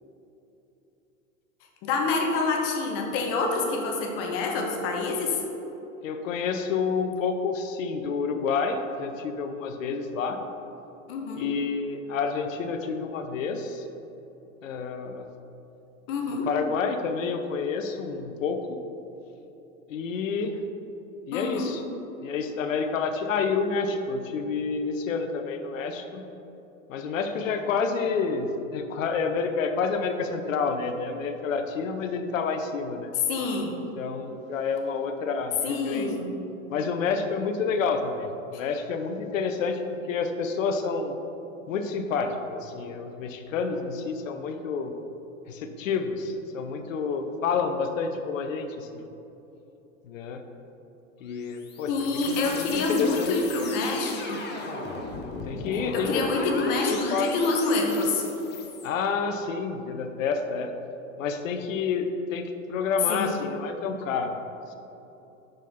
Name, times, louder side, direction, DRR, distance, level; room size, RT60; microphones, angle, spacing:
voice 1, 1.8-5.4 11.1-11.5 16.1-16.5 21.3-21.7 33.3-33.7 35.6-36.2 38.5-38.6 51.9-54.4 55.9-58.2 63.1-63.4, left 3 dB, 45° left, 1 dB, 1.2 m, -27 dB
voice 2, 6.0-10.4 11.4-13.9 14.6-15.3 16.4-18.8 19.9-20.6 21.3-21.8 22.2-26.3 26.9-33.1 34.0-36.1 36.7-41.2 41.7-44.9 45.5-49.0 50.0-50.4 51.2-53.4 55.4-56.5 56.9-57.3 58.8-60.7 61.2-64.4, left 5 dB, 70° left, 7 dB, 0.8 m, -29 dB
sound 1, 51.3-58.9, left 3 dB, 25° left, 1.0 m, -38 dB
6.4 x 6.2 x 4.3 m, 3.0 s
hypercardioid pair, 100°, 41 cm